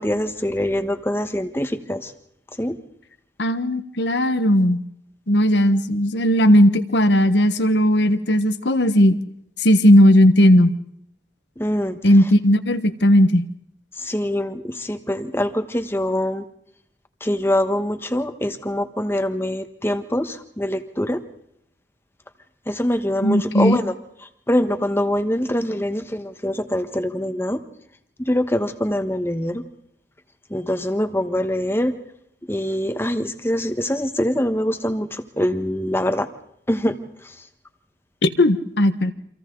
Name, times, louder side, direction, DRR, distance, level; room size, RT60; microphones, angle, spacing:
voice 1, 0.0-2.1 2.6-2.8 11.6-12.0 14.0-16.4 17.2-21.2 22.7-23.9 24.5-27.6 28.2-29.6 30.5-31.9 32.5-36.3 36.7-37.0 37.2-37.3, left 1 dB, 15° left, 8 dB, 1.3 m, -24 dB
voice 2, 3.4-4.8 5.3-9.2 9.6-10.7 12.0-13.5 23.2-23.8 38.2-39.1, equal, 70° left, 10 dB, 1.4 m, -16 dB
29.0 x 26.0 x 4.0 m, 0.74 s
head